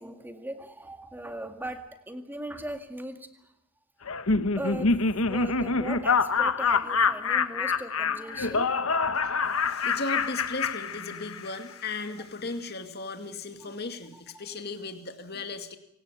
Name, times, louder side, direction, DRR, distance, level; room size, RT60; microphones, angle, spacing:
voice 1, 0.0-3.5 4.6-4.9 5.2-8.7, right 1 dB, 10° right, 6 dB, 2.1 m, -39 dB
Laughter, 4.1-11.6, left 4 dB, 75° left, 1.3 m, -26 dB
voice 2, 9.2-15.8, left 3 dB, 50° left, 7 dB, 2.3 m, -36 dB
25.5 x 18.0 x 8.4 m, 0.82 s
head